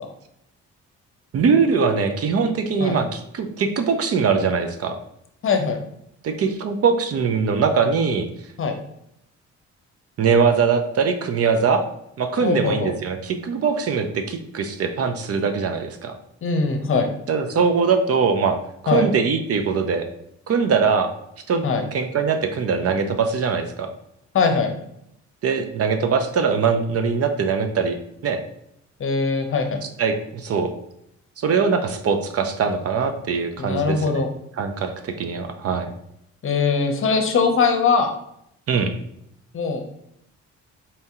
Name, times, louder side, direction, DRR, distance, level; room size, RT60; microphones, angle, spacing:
voice 1, 1.3-5.0 6.2-8.3 10.2-11.8 12.2-16.2 17.3-18.6 18.8-20.1 20.5-21.1 21.5-21.6 21.9-23.9 25.4-28.0 28.2-28.4 30.0-30.7 31.4-34.2 34.6-35.9 38.7-38.9, right 5 dB, 50° right, 7 dB, 0.6 m, -21 dB
voice 2, 5.4-5.8 8.6-8.8 12.4-12.9 16.4-17.1 18.9-19.1 21.6-21.8 24.3-24.7 29.0-29.8 33.6-34.3 36.4-38.1 39.5-39.8, left 4 dB, 45° left, 5 dB, 0.7 m, -21 dB
4.3 x 2.7 x 3.6 m, 0.77 s
cardioid pair, 90°, 30 cm